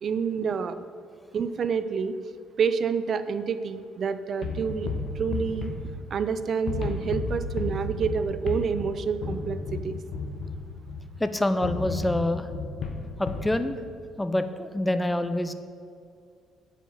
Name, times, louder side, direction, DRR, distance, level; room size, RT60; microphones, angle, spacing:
voice 1, 0.0-0.7 1.3-2.1 2.6-4.9 5.2-5.7 6.1-10.0, right 6 dB, 50° right, 12 dB, 0.6 m, -28 dB
sound 1, 4.4-6.3 6.7-11.1 11.6-13.6, left 3 dB, 55° left, 1.3 m, -33 dB
voice 2, 11.2-12.5 13.2-13.8 14.2-15.5, left 1 dB, 10° left, 10 dB, 0.6 m, -26 dB
8.2 x 5.8 x 7.5 m, 2.3 s
cardioid pair, 85°, 0 cm